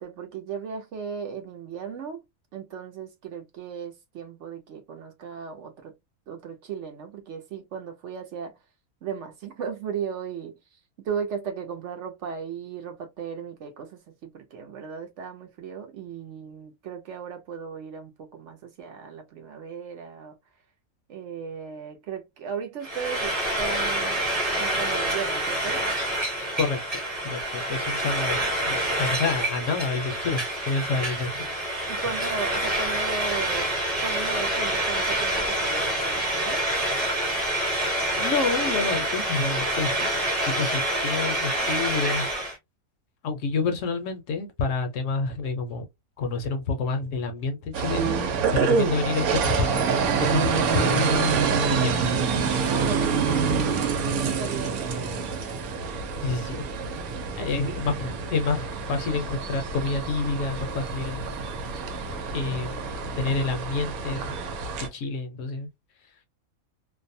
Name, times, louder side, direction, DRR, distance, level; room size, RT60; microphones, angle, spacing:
voice 1, 0.0-2.2 2.5-5.9 6.3-8.5 9.0-10.8 11.0-20.4 21.1-24.2 24.6-25.9 31.9-33.7 34.0-36.6 52.7-53.5 54.2-54.9 57.4-57.8, right 6 dB, 65° right, 0.8 m, -36 dB
Frying (food), 22.8-42.6, right 1 dB, 30° right, 1.0 m, -27 dB
voice 2, 27.2-31.5 38.2-40.2 40.5-42.3 43.2-45.9 46.2-49.8 50.2-51.5 51.8-51.9 52.5-52.6 56.2-56.6 57.4-61.3 62.3-62.8 63.2-64.4 64.9-65.7, left 4 dB, 70° left, 0.9 m, -28 dB
sound 1, 47.7-64.9, right 5 dB, 85° right, 1.1 m, -26 dB
2.5 x 2.1 x 2.6 m
omnidirectional pair, 1.5 m